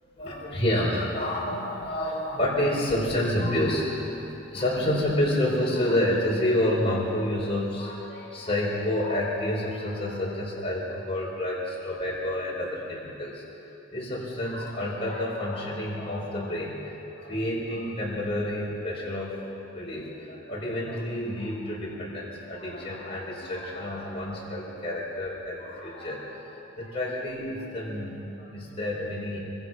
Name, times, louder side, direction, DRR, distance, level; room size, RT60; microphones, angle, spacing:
voice 1, 0.2-4.2 4.5-19.4 19.7-29.4, left 1 dB, 25° left, -5 dB, 5.1 m, -29 dB
25.5 x 25.0 x 5.9 m, 2.9 s
head